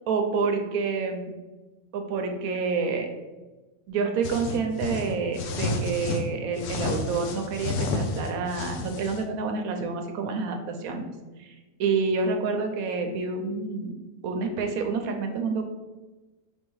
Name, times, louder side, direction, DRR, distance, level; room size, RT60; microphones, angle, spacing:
voice 1, 0.1-1.4 1.9-3.1 3.9-11.1 11.4-11.5 11.8-13.9 14.2-15.6, right 4 dB, 75° right, 4 dB, 1.0 m, -28 dB
sound 1, 4.2-6.2 6.6-9.2, left 3 dB, 65° left, 0.8 m, -30 dB
3.7 x 2.7 x 4.6 m, 1.2 s
omnidirectional pair, 1.6 m